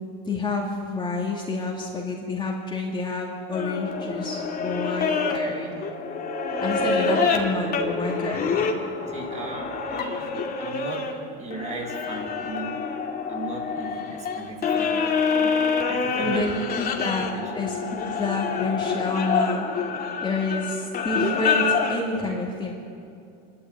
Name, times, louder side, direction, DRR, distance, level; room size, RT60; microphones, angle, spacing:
voice 1, 0.3-5.7 6.6-8.6 16.2-17.3 17.5-19.6 20.2-22.7, left 2 dB, 15° left, -3 dB, 2.7 m, -29 dB
sound 1, 3.5-11.1 11.5-22.0, left 5 dB, 30° left, 2.5 m, -26 dB
voice 2, 6.8-7.3 9.1-10.3 10.6-12.8 13.3-15.0 15.4-16.6 17.2-17.5, right 2 dB, 25° right, 2 dB, 4.8 m, -37 dB
26.5 x 13.0 x 8.9 m, 2.5 s
supercardioid pair, 130°, 29 cm